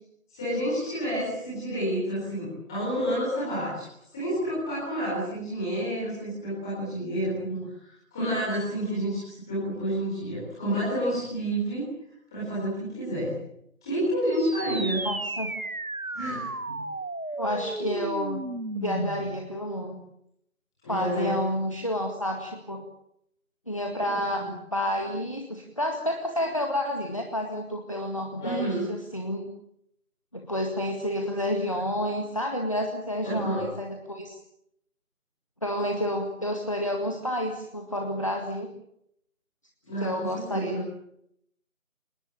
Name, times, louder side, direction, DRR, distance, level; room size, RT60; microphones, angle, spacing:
voice 1, 0.3-11.8 12.3-13.3 13.8-15.0 16.1-16.5 20.8-21.4 24.4-24.5 28.4-28.8 33.2-33.7 39.8-40.8, right 1 dB, 5° left, -10 dB, 4.4 m, -29 dB
sound 1, 14.3-19.4, right 2 dB, 75° right, 1.7 m, -34 dB
voice 2, 15.0-15.5 16.7-16.8 17.4-18.4 18.7-20.0 20.9-22.8 23.7-29.5 30.3-34.4 35.6-38.7 40.0-40.8, left 1 dB, 25° left, 2 dB, 2.0 m, -30 dB
27.5 x 20.0 x 9.0 m, 0.76 s
figure-of-eight pair, 175°, 42 cm